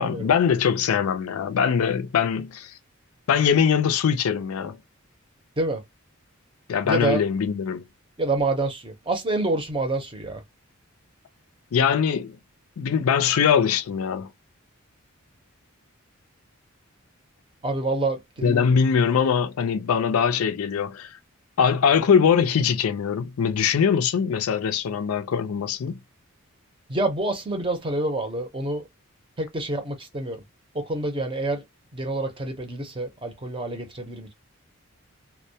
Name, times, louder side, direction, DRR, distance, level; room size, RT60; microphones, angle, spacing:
voice 1, 0.0-2.7 3.3-4.8 6.7-7.8 11.7-12.4 12.8-14.3 18.4-21.2 21.6-26.0, left 7 dB, 80° left, 0.4 m, -22 dB
voice 2, 6.8-7.2 8.2-10.4 17.6-18.8 26.9-28.9 29.4-30.4 30.7-31.6 31.9-34.3, right 2 dB, 25° right, 0.6 m, -27 dB
2.1 x 2.1 x 2.7 m
head